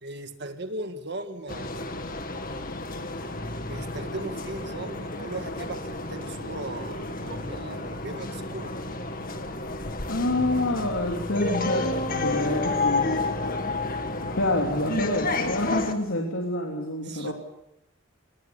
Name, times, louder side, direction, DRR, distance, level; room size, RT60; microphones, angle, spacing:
voice 1, 0.0-1.8 3.5-8.8 17.0-17.3, right 2 dB, 55° right, 7 dB, 1.9 m, -38 dB
sound 1, 1.5-15.9, left 2 dB, 45° left, 2.0 m, -31 dB
voice 2, 10.1-13.6 14.1-17.3, left 1 dB, 90° left, 0 dB, 3.4 m, -27 dB
28.0 x 20.0 x 7.2 m, 0.82 s
head